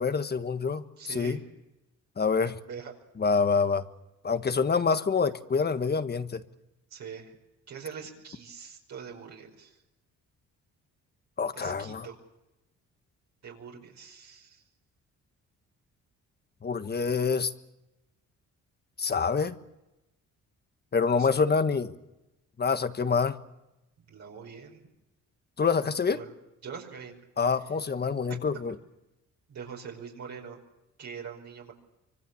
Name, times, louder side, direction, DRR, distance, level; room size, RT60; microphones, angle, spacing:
voice 1, 0.0-1.4 2.2-2.6 3.2-3.8 4.2-6.4 11.4-12.1 16.6-17.5 19.0-19.6 20.9-21.9 22.6-23.4 25.6-26.2 27.4-28.7, left 5 dB, 35° left, 10 dB, 1.4 m, -26 dB
voice 2, 1.0-1.4 2.7-2.9 6.9-7.3 7.7-9.7 11.5-12.2 13.4-14.6 21.1-21.3 24.1-24.8 26.1-26.3 26.6-27.1 29.5-30.6 31.0-31.7, right 6 dB, 65° right, -1 dB, 5.4 m, -43 dB
25.5 x 24.0 x 7.1 m, 0.95 s
cardioid pair, 90°, 30 cm